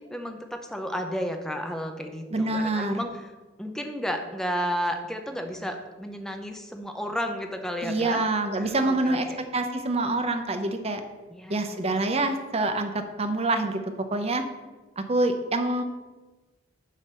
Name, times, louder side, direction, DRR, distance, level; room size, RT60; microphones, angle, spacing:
voice 1, 0.1-3.3 3.6-8.3 8.5-9.4 11.3-12.0, equal, 5° left, 4 dB, 0.7 m, -32 dB
voice 2, 2.3-3.0 7.8-11.0 11.5-13.8 14.1-14.4 15.0-15.8, right 2 dB, 30° right, 7 dB, 0.7 m, -26 dB
7.4 x 3.9 x 6.7 m, 1.2 s
head